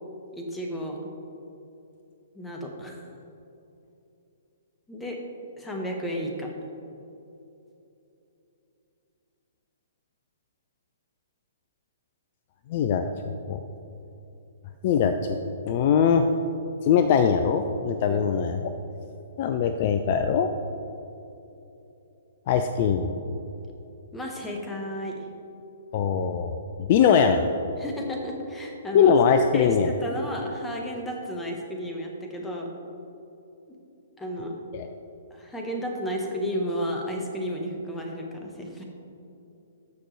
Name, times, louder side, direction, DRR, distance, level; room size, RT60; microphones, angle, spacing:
voice 1, 0.3-1.0 2.3-3.0 4.9-5.2 5.6-6.5 18.1-18.3 24.1-25.3 27.8-29.1 29.5-32.7 34.2-34.5 35.3-38.8, equal, 10° left, 1 dB, 1.2 m, -32 dB
voice 2, 12.7-13.1 13.5-13.6 14.8-15.4 15.7-16.3 16.8-18.6 19.4-20.5 22.5-23.1 25.9-27.4 28.9-29.9 34.7-34.9, left 7 dB, 40° left, 8 dB, 0.4 m, -21 dB
13.5 x 5.8 x 3.3 m, 2.9 s
figure-of-eight pair, 120°, 0 cm